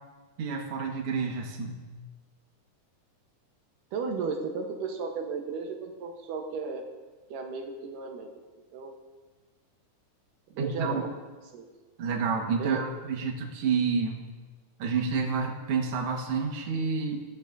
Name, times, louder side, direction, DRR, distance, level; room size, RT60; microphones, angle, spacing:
voice 1, 0.4-1.8 10.6-11.0 12.0-14.2 14.8-17.2, right 5 dB, 50° right, 0 dB, 2.1 m, -29 dB
voice 2, 3.9-6.8 7.3-8.3 8.7-8.9 10.5-11.1 11.5-11.7 12.6-12.8, right 4 dB, 80° right, 2 dB, 2.7 m, -34 dB
15.0 x 14.5 x 2.7 m, 1.3 s
omnidirectional pair, 3.7 m